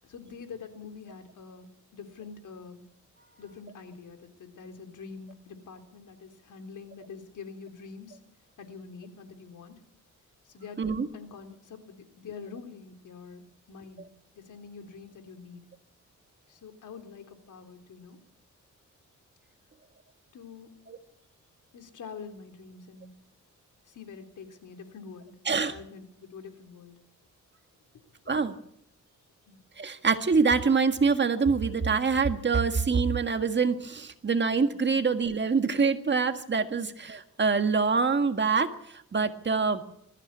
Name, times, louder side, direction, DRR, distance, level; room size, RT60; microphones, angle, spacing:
voice 1, 0.1-2.8 3.4-8.2 8.6-9.8 10.5-13.4 13.7-14.0 14.3-15.6 16.5-18.2 20.3-20.7 21.7-23.1 23.9-25.3 25.7-26.9 29.5-29.6 34.9-35.0 36.7-36.9, left 5 dB, 80° left, 6 dB, 3.4 m, -45 dB
voice 2, 10.8-11.1 20.9-21.0 25.5-25.8 28.3-28.6 29.8-39.8, right 5 dB, 35° right, 8 dB, 1.7 m, -25 dB
21.0 x 15.0 x 9.8 m, 0.73 s
wide cardioid pair, 120°, 31 cm